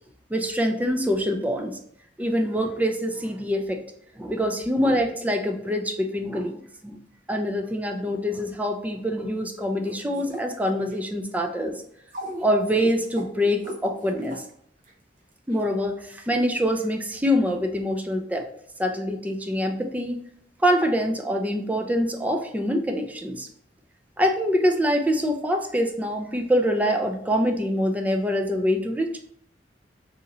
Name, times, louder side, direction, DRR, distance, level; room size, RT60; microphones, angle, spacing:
voice 1, 0.3-1.8 2.2-3.8 4.2-7.0 7.3-11.8 12.4-14.4 15.5-18.5 18.8-20.2 20.6-23.5 24.2-29.2, equal, 10° right, 4 dB, 0.4 m, -25 dB
sound 1, 9.8-11.0 12.1-14.4 14.8-14.9 15.5-15.6, equal, 50° right, 0.7 m, -37 dB
3.8 x 2.7 x 3.0 m, 0.67 s
head